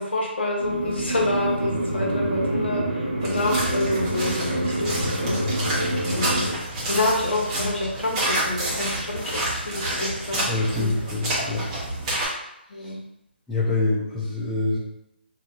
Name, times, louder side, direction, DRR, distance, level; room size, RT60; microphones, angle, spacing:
voice 1, 0.0-6.6 6.9-10.5 10.8-10.9 12.7-13.0, left 2 dB, 70° left, -2 dB, 1.0 m, -27 dB
sound 1, 0.6-6.5, right 1 dB, 55° right, 0.9 m, -27 dB
sound 2, 3.2-12.3, right 1 dB, 25° right, 1.0 m, -29 dB
voice 2, 10.4-11.7 12.8-12.9 13.5-14.8, left 3 dB, 5° left, -9 dB, 0.5 m, -25 dB
2.8 x 2.6 x 2.5 m, 0.82 s
figure-of-eight pair, 145°, 6 cm